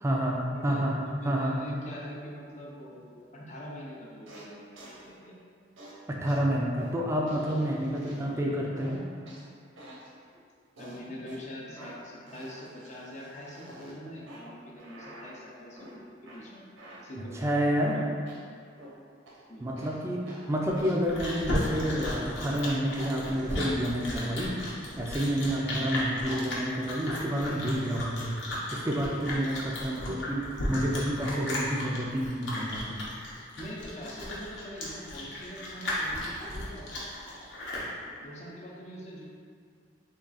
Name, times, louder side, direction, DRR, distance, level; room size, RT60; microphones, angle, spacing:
voice 1, 0.0-1.0 1.2-1.6 6.1-9.0 17.3-18.0 19.6-24.6 25.0-28.4 28.7-33.0, equal, 15° right, -2 dB, 0.4 m, -29 dB
voice 2, 1.2-5.4 8.0-8.7 10.8-16.6 17.0-17.6 17.9-18.0 19.5-19.7 25.5-25.9 33.6-37.1 38.2-39.3, equal, 40° left, -4 dB, 0.6 m, -44 dB
sound 1, 4.3-4.5 4.8-5.0 5.8-5.9 6.3-6.4 6.8-6.9 7.3-8.4 8.8-9.4 9.8-10.1 10.8-11.4 11.8-12.0 12.3-14.0 14.3-14.4 14.8-15.4 15.8-15.9 16.3-16.4 16.8-18.0 18.3-18.4 18.8-18.9 19.3-19.4 19.8-20.0 20.3-20.5 20.8-21.0 21.3-21.4 21.8-22.7 23.3-23.5, equal, 80° right, 0.7 m, -47 dB
Chewing mastication, 20.7-37.9, left 1 dB, 70° left, 0.8 m, -35 dB
3.6 x 2.4 x 3.9 m, 2.1 s
head